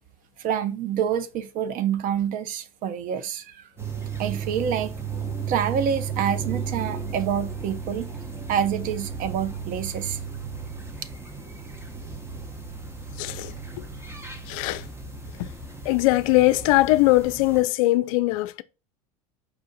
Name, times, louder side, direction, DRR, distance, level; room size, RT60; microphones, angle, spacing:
voice 1, 0.4-3.6 4.2-4.9 5.5-8.1 8.5-10.2, right 8 dB, 45° right, 0.6 m, -27 dB
sound 1, 3.8-17.6, right 6 dB, 15° right, 1.0 m, -34 dB
voice 2, 13.2-13.5 13.8-13.9 14.5-14.8 15.4-15.5 15.8-18.6, left 19 dB, 65° left, 0.4 m, -21 dB
4.9 x 2.5 x 4.0 m
hypercardioid pair, 85°, 19 cm